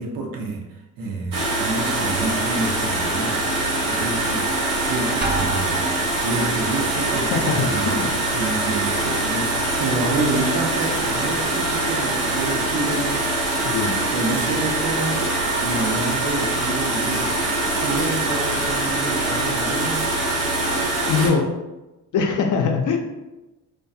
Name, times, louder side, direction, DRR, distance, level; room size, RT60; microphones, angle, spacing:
voice 1, 0.0-3.4 3.8-5.9 6.2-8.0 8.3-13.2 14.1-17.3 17.6-20.0, right 2 dB, 60° right, 1 dB, 0.6 m, -28 dB
sound 1, 1.3-21.3, right 2 dB, 85° right, 0.8 m, -23 dB
Drum, 5.2-6.4, right 4 dB, 25° right, 0.4 m, -28 dB
voice 2, 7.1-8.1 13.6-14.0 21.1-21.5 22.1-23.0, left 5 dB, 50° left, 3 dB, 0.5 m, -22 dB
2.3 x 2.2 x 2.6 m, 1.0 s
hypercardioid pair, 55°, 41 cm